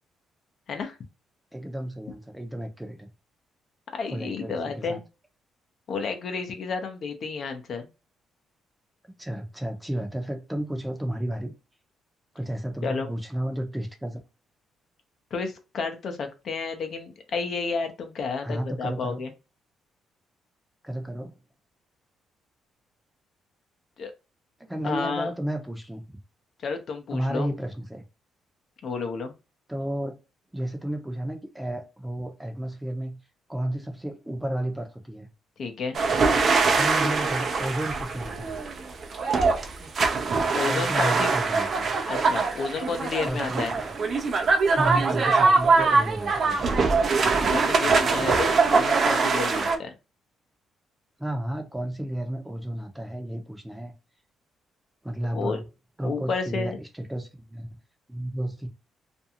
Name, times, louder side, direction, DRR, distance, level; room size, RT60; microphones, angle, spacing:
voice 1, 1.5-3.1 4.1-5.0 9.2-11.5 12.3-14.2 18.4-19.2 20.8-21.4 24.6-26.2 27.1-28.0 29.7-30.1 30.5-33.2 33.5-35.3 36.7-38.6 40.6-41.9 43.3-43.9 44.7-46.7 51.2-53.9 55.0-55.6 56.0-57.7 58.1-58.7, right 1 dB, 5° right, 0.7 m, -32 dB
voice 2, 3.9-5.0 5.9-7.9 12.8-13.1 15.3-19.3 24.0-24.1 24.8-25.3 26.6-27.5 28.8-29.3 35.6-36.0 40.5-41.3 42.1-43.7 47.5-49.9 55.3-55.6 56.0-56.8, left 4 dB, 60° left, 0.6 m, -31 dB
sound 1, 35.9-49.8, right 4 dB, 50° right, 0.5 m, -23 dB
2.5 x 2.3 x 2.7 m
cardioid pair, 90°, 0 cm